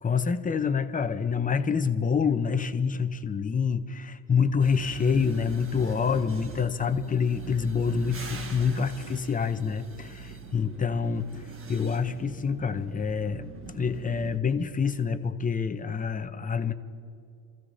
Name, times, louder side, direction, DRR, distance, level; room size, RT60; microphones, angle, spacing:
voice 1, 0.0-11.3 11.7-16.7, left 6 dB, 20° left, 10 dB, 0.8 m, -27 dB
sound 1, 4.6-14.4, right 5 dB, 30° right, 1.4 m, -43 dB
27.5 x 15.0 x 2.8 m, 2.6 s
supercardioid pair, 95°, 44 cm